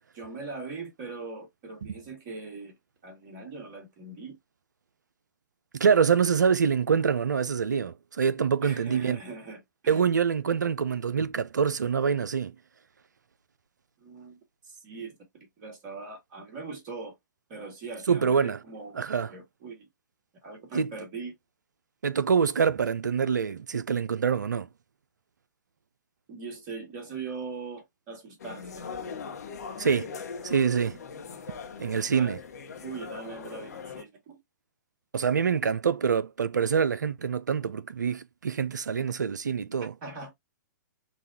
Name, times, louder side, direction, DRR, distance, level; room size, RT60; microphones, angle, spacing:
voice 1, 0.1-2.8 3.0-4.4 8.6-10.0 14.0-14.4 14.7-17.2 17.5-19.0 19.3-19.9 20.4-21.3 26.3-28.9 31.9-32.4 32.8-34.4 40.0-40.3, right 4 dB, 35° right, 2.0 m, -41 dB
voice 2, 5.7-9.2 9.9-12.5 18.1-18.6 19.0-19.3 20.7-20.9 22.0-24.7 29.8-30.1 30.4-31.0 31.8-32.4 35.1-39.9, right 6 dB, 70° right, 0.5 m, -25 dB
sound 1, 28.4-34.0, left 5 dB, 55° left, 0.9 m, -40 dB
5.3 x 2.3 x 2.7 m
figure-of-eight pair, 115°, 10 cm